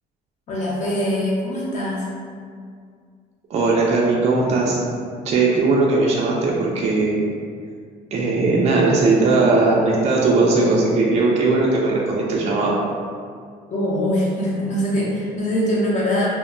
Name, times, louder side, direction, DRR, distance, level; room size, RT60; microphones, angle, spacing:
voice 1, 0.5-2.1 13.7-16.3, equal, 45° left, -6 dB, 0.9 m, -22 dB
voice 2, 3.5-4.8 5.2-7.2 8.1-12.8, right 3 dB, 40° right, -4 dB, 0.4 m, -18 dB
2.1 x 2.1 x 3.6 m, 2.1 s
cardioid pair, 110°, 17 cm